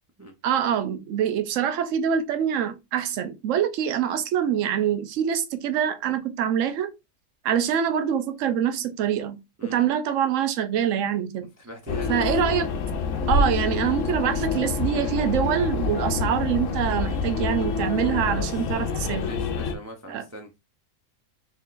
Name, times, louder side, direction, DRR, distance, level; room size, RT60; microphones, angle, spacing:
voice 1, 0.4-6.9 7.4-11.5 12.1-12.7 13.3-19.2 20.1-20.2, right 9 dB, 75° right, 1.0 m, -25 dB
voice 2, 11.6-12.5 18.2-18.6 19.2-20.5, right 1 dB, 25° right, 0.3 m, -41 dB
sound 1, 11.9-19.7, left 4 dB, 75° left, 1.0 m, -27 dB
4.0 x 3.7 x 2.4 m
omnidirectional pair, 1.4 m